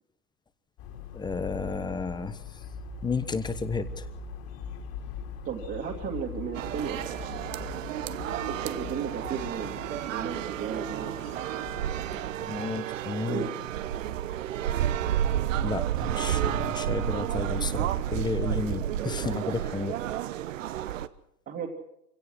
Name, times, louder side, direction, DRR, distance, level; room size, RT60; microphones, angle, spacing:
sound 1, 0.8-12.2, left 5 dB, 40° left, 3.5 m, -41 dB
voice 1, 1.1-2.4 3.0-4.0 12.1-13.4 15.6-20.0, left 4 dB, 10° left, 12 dB, 1.2 m, -32 dB
voice 2, 5.4-7.1 8.5-11.1 13.3-13.5 21.5-21.7, right 7 dB, 25° right, -1 dB, 2.5 m, -34 dB
sound 2, 6.5-21.1, right 11 dB, 60° right, 1.1 m, -31 dB
24.5 x 17.5 x 6.3 m, 0.80 s
hypercardioid pair, 110°, 44 cm